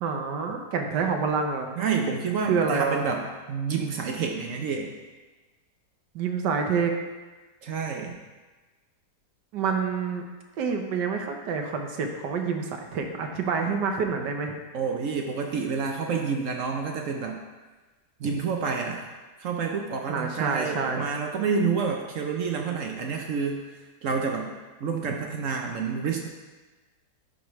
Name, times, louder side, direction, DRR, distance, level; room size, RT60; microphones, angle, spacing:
voice 1, 0.0-1.7 2.4-3.1 6.1-7.0 9.5-10.2 10.6-14.5 18.2-18.3 20.1-21.1 25.0-25.1, right 5 dB, 80° right, 3 dB, 1.5 m, -27 dB
voice 2, 1.8-4.9 7.6-8.2 14.7-17.4 18.2-19.1 19.4-23.7 24.0-24.5 24.8-26.3, right 5 dB, 65° right, 2 dB, 0.8 m, -29 dB
12.0 x 4.9 x 3.1 m, 1.2 s
omnidirectional pair, 1.8 m